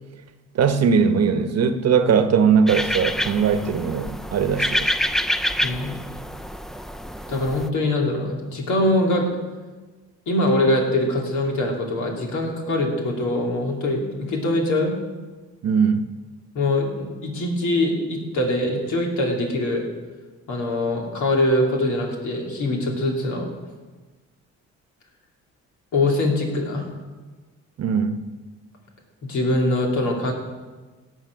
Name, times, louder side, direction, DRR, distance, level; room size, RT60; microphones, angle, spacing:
voice 1, 0.5-4.9 15.6-16.1 27.8-28.2, right 6 dB, 55° right, 9 dB, 1.0 m, -20 dB
sound 1, 2.7-7.7, equal, ahead, 0.5 m, -27 dB
voice 2, 5.6-5.9 7.3-9.3 10.3-15.0 16.5-19.8 20.5-23.5 25.9-26.9 29.2-30.3, left 1 dB, 75° left, 0 dB, 3.0 m, -23 dB
17.5 x 6.3 x 6.2 m, 1.3 s
cardioid pair, 90°, 30 cm